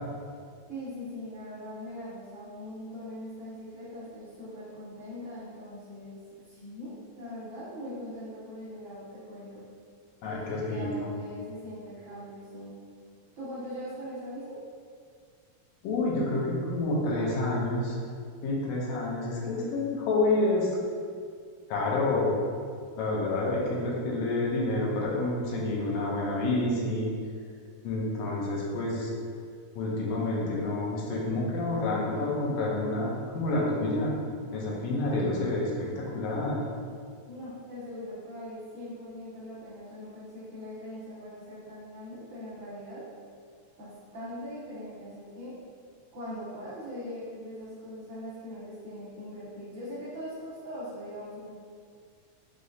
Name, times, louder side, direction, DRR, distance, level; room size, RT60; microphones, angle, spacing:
voice 1, 0.7-9.7 10.2-12.8 13.4-14.6 37.3-43.0 43.8-45.5 46.1-51.5, equal, 70° right, -9 dB, 1.2 m, -41 dB
voice 2, 10.2-11.1 15.8-18.0 18.4-20.7 21.7-22.4 23.0-27.1 27.8-29.1 29.7-34.1 34.5-36.6, left 2 dB, 75° left, -4 dB, 1.6 m, -28 dB
4.7 x 3.1 x 2.6 m, 2.1 s
omnidirectional pair, 3.4 m